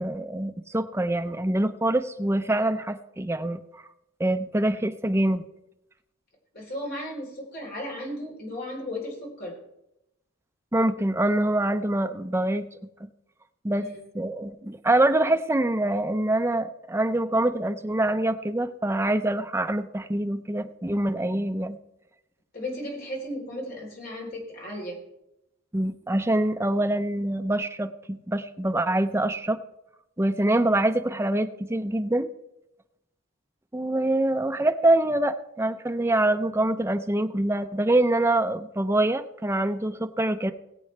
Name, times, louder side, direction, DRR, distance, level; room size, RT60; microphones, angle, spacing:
voice 1, 0.0-3.6 4.2-5.4 10.7-12.7 13.6-13.9 14.1-21.8 25.7-29.6 30.2-32.3 33.7-40.5, right 1 dB, 10° right, 7 dB, 0.5 m, -25 dB
voice 2, 6.5-9.6 13.8-14.0 22.5-25.0, left 1 dB, 45° left, -1 dB, 3.8 m, -35 dB
20.0 x 8.3 x 3.3 m, 0.85 s
head